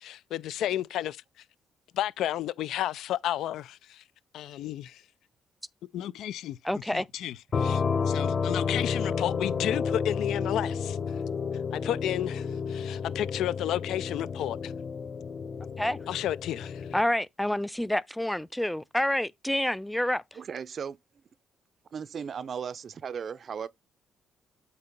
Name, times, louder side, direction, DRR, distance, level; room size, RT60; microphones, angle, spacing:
voice 1, 0.0-1.2 1.9-4.0 4.3-5.0 5.9-6.6 6.9-11.0 11.7-14.7 16.1-16.9, left 12 dB, 80° left, 0.3 m, -32 dB
voice 2, 6.6-7.1 15.8-16.0 16.9-20.2, left 1 dB, 5° left, 0.3 m, -28 dB
sound 1, 7.5-17.0, left 6 dB, 45° left, 0.7 m, -31 dB
voice 3, 20.3-21.0 21.9-23.7, right 7 dB, 50° right, 0.5 m, -36 dB
8.2 x 2.9 x 5.1 m
cardioid pair, 90°, 0 cm